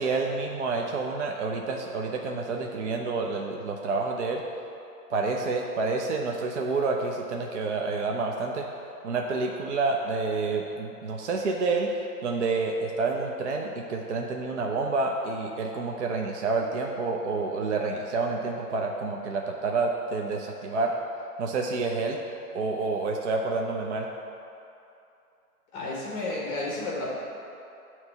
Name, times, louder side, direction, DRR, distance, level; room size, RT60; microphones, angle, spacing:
voice 1, 0.0-4.4 5.1-8.7 9.0-11.9 12.2-21.0 21.4-22.2 22.5-24.1, right 3 dB, 50° right, 1 dB, 0.6 m, -28 dB
voice 2, 25.7-27.1, left 2 dB, 10° left, -5 dB, 0.8 m, -31 dB
9.2 x 3.2 x 6.5 m, 2.7 s
hypercardioid pair, 150°, 46 cm